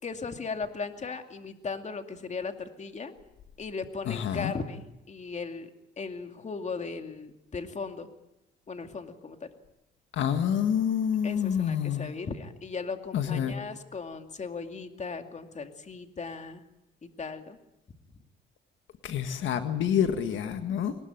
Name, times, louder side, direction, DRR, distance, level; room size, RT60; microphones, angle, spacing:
voice 1, 0.0-3.1 3.6-5.7 6.0-8.1 8.7-9.5 11.2-16.6 17.2-17.6, left 4 dB, 35° left, 6 dB, 2.4 m, -37 dB
voice 2, 4.0-4.5 10.1-12.1 13.1-13.5 19.0-21.0, left 8 dB, 75° left, 8 dB, 1.6 m, -27 dB
22.0 x 20.0 x 9.1 m, 0.91 s
cardioid pair, 90°, 20 cm